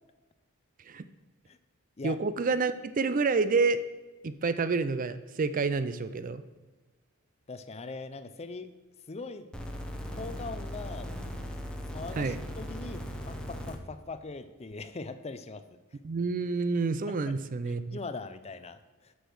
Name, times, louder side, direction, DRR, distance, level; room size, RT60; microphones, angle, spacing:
voice 1, 2.0-3.8 4.2-6.4 12.2-12.4 16.0-18.0, right 4 dB, 40° right, 13 dB, 0.4 m, -28 dB
voice 2, 7.5-8.7 9.1-9.5 10.2-11.1 11.9-15.8 17.1-17.3 17.7-19.1, left 3 dB, 30° left, 11 dB, 0.5 m, -41 dB
sound 1, 9.5-13.8 14.7-14.8, equal, 5° left, 0.8 m, -38 dB
8.1 x 6.3 x 6.2 m, 1.2 s
head